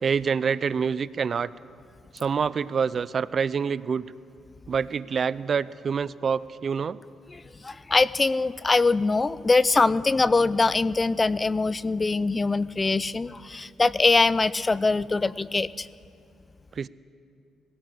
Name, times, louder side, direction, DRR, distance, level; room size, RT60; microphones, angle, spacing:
voice 1, 0.0-1.5 2.1-4.0 4.7-7.0 16.8-16.9, right 6 dB, 45° right, 18 dB, 0.5 m, -26 dB
voice 2, 7.3-15.9, left 3 dB, 25° left, 18 dB, 0.5 m, -23 dB
20.0 x 17.0 x 7.7 m, 2.5 s
cardioid pair, 90°, 0 cm